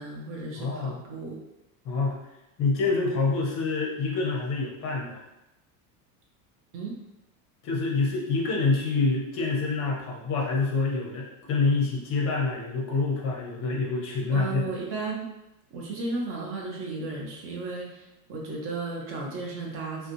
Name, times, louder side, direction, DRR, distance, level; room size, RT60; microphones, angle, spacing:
voice 1, 0.0-1.4 6.7-7.0 14.3-15.3 15.7-20.1, right 3 dB, 30° right, -2 dB, 0.8 m, -34 dB
voice 2, 0.5-1.0 1.8-2.2 2.6-5.2 7.6-14.7, left 3 dB, 30° left, -1 dB, 0.8 m, -26 dB
5.3 x 2.3 x 3.0 m, 0.91 s
supercardioid pair, 170°, 45 cm